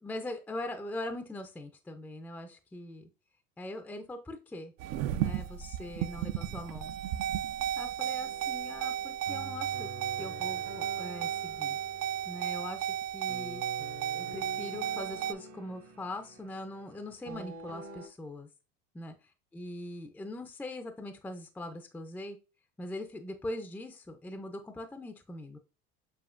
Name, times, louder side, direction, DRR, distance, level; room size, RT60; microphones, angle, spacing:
voice 1, 0.0-3.1 3.6-4.7 5.2-7.0 7.8-9.9 10.2-11.8 12.3-13.6 14.1-18.5 18.9-19.1 19.5-22.4 22.8-25.6, left 1 dB, 5° left, 7 dB, 0.4 m, -41 dB
sound 1, 4.8-15.3, right 11 dB, 55° right, 0.4 m, -34 dB
sound 2, 8.2-18.1, right 1 dB, 70° right, 1.7 m, -47 dB
7.1 x 2.4 x 2.5 m, 0.32 s
supercardioid pair, 105°, 31 cm